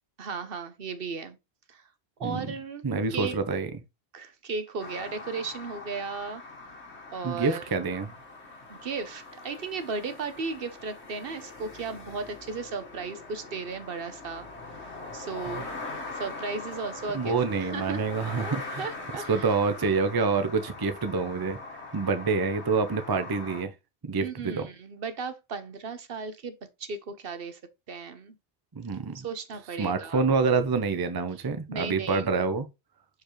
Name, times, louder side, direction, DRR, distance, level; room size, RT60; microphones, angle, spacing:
voice 1, 0.2-1.4 1.7-1.8 2.2-3.3 4.1-6.4 7.1-7.6 8.7-14.5 14.8-15.7 16.1-18.0 18.3-19.5 24.2-26.5 26.8-27.6 27.9-28.3 29.1-30.2 31.7-32.2, right 4 dB, 60° right, 1.0 m, -36 dB
voice 2, 2.8-3.7 7.2-8.1 17.1-18.9 19.3-21.6 21.9-23.7 24.0-24.7 28.7-29.2 29.8-32.7, right 4 dB, 25° right, 0.6 m, -27 dB
sound 1, 4.8-23.6, left 3 dB, 90° left, 1.8 m, -42 dB
7.1 x 4.8 x 3.1 m
omnidirectional pair, 1.1 m